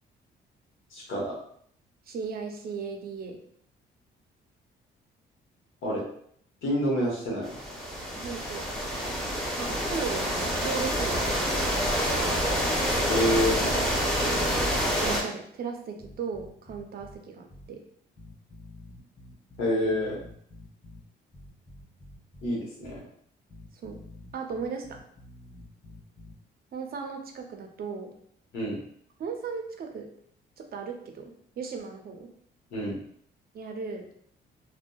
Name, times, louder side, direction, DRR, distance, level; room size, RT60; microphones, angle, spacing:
voice 1, 0.9-1.4 5.8-6.0 6.6-7.6 13.1-13.6 19.6-20.2 22.4-23.0 28.5-28.8 32.7-33.0, equal, 80° left, -3 dB, 1.0 m, -27 dB
voice 2, 2.1-3.4 8.1-8.6 9.6-10.3 10.6-12.0 15.0-17.8 23.7-24.0 24.3-25.0 26.7-28.1 29.2-30.1 30.6-32.3 33.5-34.0, right 5 dB, 50° right, 4 dB, 0.5 m, -36 dB
sound 1, 7.4-15.2, equal, ahead, 0.7 m, -27 dB
sound 2, 16.0-17.2 17.5-17.7 18.2-21.0 21.3-22.5 22.8-23.0 23.5-26.3, left 1 dB, 40° left, 1.3 m, -48 dB
2.6 x 2.1 x 2.2 m, 0.65 s
cardioid pair, 90°, 20 cm